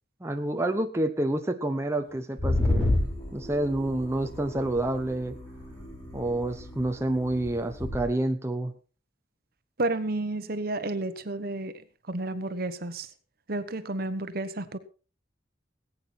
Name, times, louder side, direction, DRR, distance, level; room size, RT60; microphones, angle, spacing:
voice 1, 0.2-5.4 6.1-8.7, right 1 dB, 15° right, 5 dB, 0.9 m, -28 dB
sound 1, 2.4-8.0, left 1 dB, 15° left, 6.2 m, -31 dB
voice 2, 9.8-13.1 13.5-14.8, right 2 dB, 55° right, 11 dB, 1.2 m, -31 dB
19.5 x 9.0 x 4.4 m, 0.37 s
head